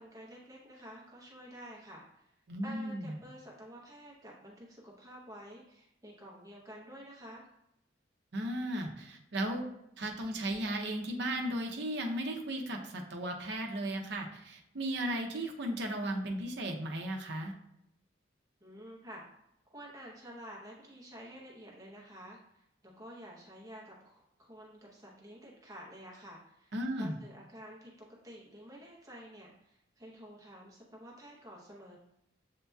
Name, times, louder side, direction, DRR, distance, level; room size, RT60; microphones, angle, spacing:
voice 1, 0.0-2.3 2.6-7.5 18.6-19.2 19.7-32.0, equal, 15° right, -4 dB, 0.8 m, -50 dB
voice 2, 2.5-3.1 8.3-9.7 10.0-17.5 26.7-27.2, right 1 dB, 60° right, 2 dB, 0.6 m, -35 dB
7.8 x 2.8 x 2.3 m, 0.80 s
head